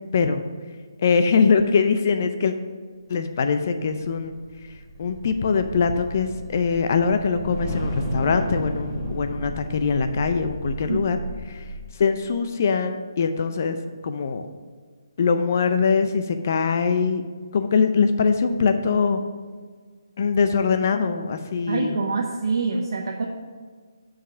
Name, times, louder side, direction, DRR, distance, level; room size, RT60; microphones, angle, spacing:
voice 1, 1.0-2.5 3.1-4.3 5.0-11.2 11.5-11.6 12.0-13.8 14.0-14.4 15.2-17.2 17.5-19.2 20.2-22.0, left 5 dB, 40° left, 8 dB, 0.5 m, -22 dB
sound 1, 4.0-12.2, equal, 5° right, 1.4 m, -33 dB
voice 2, 21.7-23.3, right 4 dB, 65° right, 1 dB, 0.7 m, -25 dB
5.9 x 4.9 x 6.0 m, 1.6 s
hypercardioid pair, 170°, 2 cm